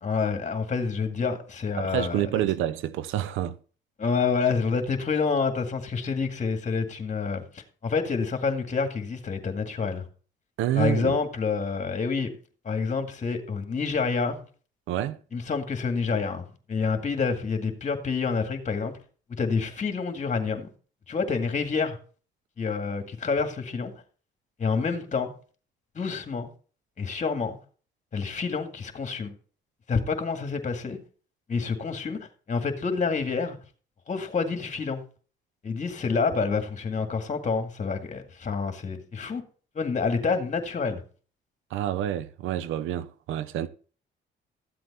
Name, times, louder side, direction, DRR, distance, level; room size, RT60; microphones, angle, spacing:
voice 1, 0.0-2.5 4.0-10.1 10.7-12.3 12.6-14.4 15.3-19.0 19.4-20.7 21.1-22.0 22.6-23.9 24.6-25.3 26.0-26.5 27.0-27.6 28.1-29.3 29.9-31.0 31.5-32.2 32.5-33.6 34.1-35.0 35.6-39.4 39.8-41.0, left 5 dB, 40° left, 2.0 m, -28 dB
voice 2, 1.8-3.6 10.6-11.2 14.9-15.2 41.7-43.7, right 12 dB, 90° right, 0.7 m, -28 dB
13.5 x 7.8 x 4.2 m
cardioid pair, 90°, 20 cm